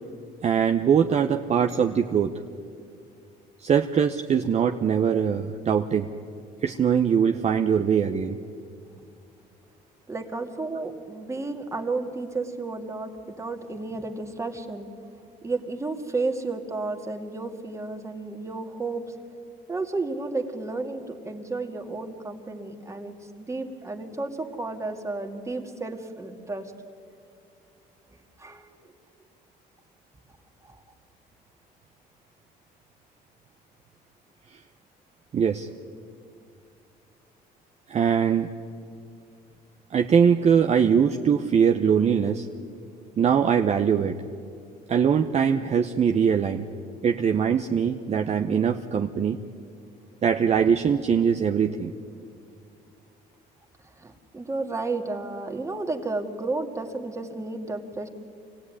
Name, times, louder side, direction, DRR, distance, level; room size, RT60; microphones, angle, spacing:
voice 1, 0.4-2.3 3.6-6.1 6.6-8.4 35.3-35.7 37.9-38.5 39.9-42.5 43.2-44.1 44.9-46.7 47.0-49.4 50.2-51.9, right 7 dB, 40° right, 4 dB, 0.9 m, -22 dB
voice 2, 10.1-14.9 15.4-19.0 19.7-26.7 28.4-28.7 30.6-30.8 54.0-58.1, right 3 dB, 15° right, 4 dB, 2.2 m, -32 dB
25.0 x 16.5 x 9.8 m, 2.4 s
cardioid pair, 110°, 17 cm